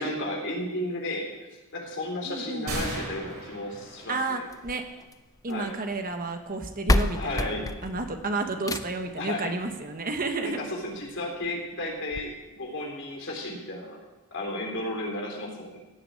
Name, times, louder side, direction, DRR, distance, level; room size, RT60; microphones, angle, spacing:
voice 1, 0.0-4.4 5.5-5.7 7.2-7.7 9.2-9.5 10.4-14.0 14.3-15.8, left 1 dB, 60° left, 0 dB, 3.6 m, -33 dB
voice 2, 2.2-2.7 4.1-4.8 5.4-10.6, right 3 dB, 40° right, 6 dB, 1.3 m, -31 dB
sound 1, 2.7-4.6, right 1 dB, 85° right, 6.1 m, -36 dB
sound 2, 4.5-5.7 6.5-6.6 6.9-9.2 10.5-10.6 11.1-11.2 11.4-11.5 12.1-12.2, left 1 dB, 15° left, 0.5 m, -28 dB
16.5 x 7.0 x 8.7 m, 1.1 s
head